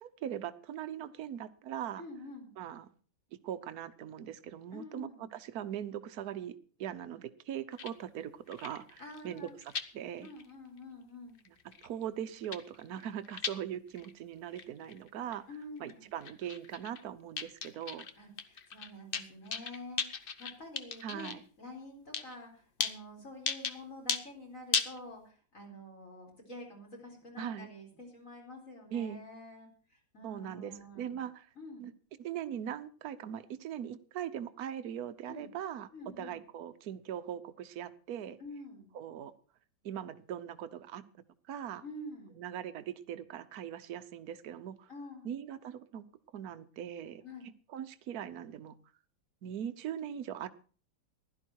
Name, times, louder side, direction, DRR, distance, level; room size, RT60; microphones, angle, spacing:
voice 1, 0.0-2.0 2.6-2.9 3.4-6.5 6.8-10.3 11.5-11.6 11.8-15.5 15.8-18.1 21.0-21.4 27.4-27.7 28.9-29.2 30.2-31.5 31.8-31.9 32.2-35.9 36.2-38.4 38.9-39.3 39.8-41.0 41.5-41.8 42.4-44.9 45.2-46.0 46.3-47.2 47.7-48.8 49.4-50.5, right 10 dB, 60° right, 11 dB, 1.2 m, -40 dB
voice 2, 2.0-2.5 4.7-5.3 9.0-9.6 10.2-11.3 15.5-16.0 18.2-21.3 21.6-31.1 31.6-31.8 35.3-35.5 35.9-36.4 38.4-38.9 41.8-42.4 44.9-45.3 47.2-47.5, left 1 dB, 40° left, 1 dB, 4.5 m, -48 dB
sound 1, 7.7-7.9 8.2-8.3 8.5-9.8 10.2-10.5 10.8-10.9 11.4-12.0 12.3-13.5 13.9-14.1 14.5-15.4 15.6-15.9 16.2-17.0 17.4-18.1 18.4-21.3 22.1-22.3 22.8-22.9 23.5-23.7 24.1-24.2 24.7-25.0, left 6 dB, 55° left, 0.6 m, -36 dB
15.5 x 12.0 x 4.6 m, 0.40 s
omnidirectional pair, 2.2 m